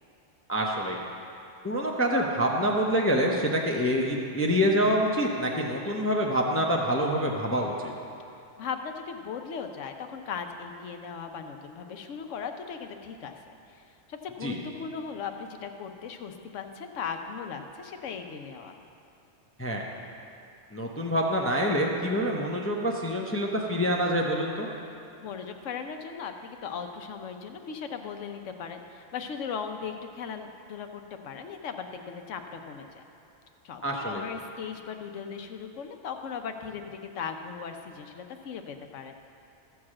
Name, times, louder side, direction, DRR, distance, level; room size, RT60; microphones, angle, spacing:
voice 1, 0.5-1.0 1.6-7.9 14.4-14.6 19.6-19.8 20.7-24.7 33.8-34.2, equal, 15° left, -1 dB, 0.6 m, -26 dB
voice 2, 8.6-13.3 13.7-13.8 14.1-18.8 25.2-33.0 33.6-39.1, left 6 dB, 75° left, 6 dB, 1.1 m, -38 dB
13.5 x 4.8 x 7.3 m, 2.6 s
omnidirectional pair, 1.3 m